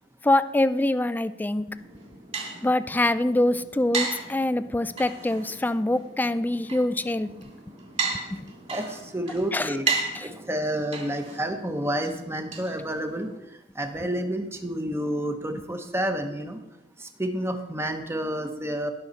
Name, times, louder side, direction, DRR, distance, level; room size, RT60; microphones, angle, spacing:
voice 1, 0.2-1.7 2.6-7.3 8.3-8.4 9.5-9.8 10.1-10.3, left 1 dB, 10° left, 13 dB, 0.3 m, -24 dB
sound 1, 1.7-13.4, right 4 dB, 35° right, 2.8 m, -35 dB
voice 2, 8.7-9.9 10.2-13.3 13.7-16.6 17.0-18.9, right 1 dB, 15° right, 5 dB, 1.1 m, -29 dB
19.0 x 6.4 x 4.1 m, 0.93 s
head